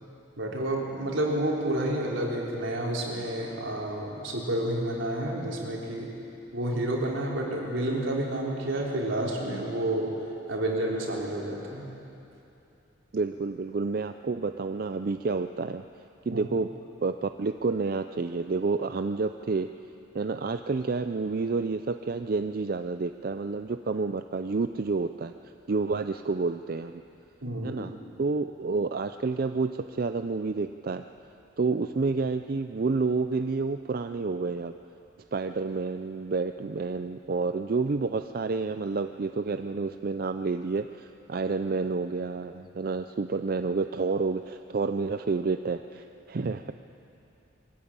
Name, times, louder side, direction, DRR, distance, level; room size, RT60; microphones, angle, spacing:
voice 1, 0.4-6.1 6.5-10.2 10.5-11.9 16.3-16.5 27.4-27.8, right 1 dB, 80° right, -3 dB, 3.7 m, -30 dB
voice 2, 13.1-15.8 16.3-16.7 17.0-19.7 20.1-25.3 25.7-27.0 27.6-31.0 31.6-34.7 35.3-46.7, right 4 dB, 50° right, 8 dB, 0.4 m, -29 dB
21.5 x 14.0 x 8.7 m, 2.8 s
head